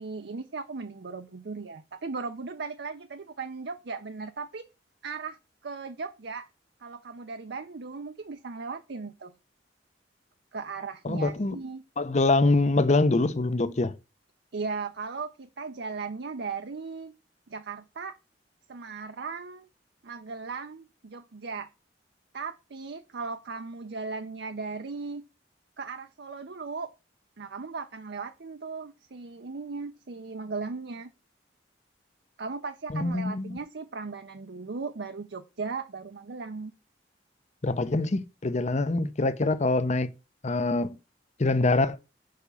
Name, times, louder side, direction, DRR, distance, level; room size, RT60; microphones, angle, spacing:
voice 1, 0.0-4.7 5.0-5.4 5.6-6.5 6.8-9.3 10.5-11.8 14.5-17.1 17.5-18.2 18.7-19.7 20.0-21.7 22.3-25.2 25.8-26.9 27.4-31.1 32.4-36.7, right 4 dB, 70° right, 0.6 m, -37 dB
voice 2, 11.0-11.6 12.0-13.9 32.9-33.6 37.6-40.1 40.4-41.0 41.4-42.0, left 2 dB, 40° left, 0.7 m, -24 dB
6.6 x 5.1 x 7.0 m
head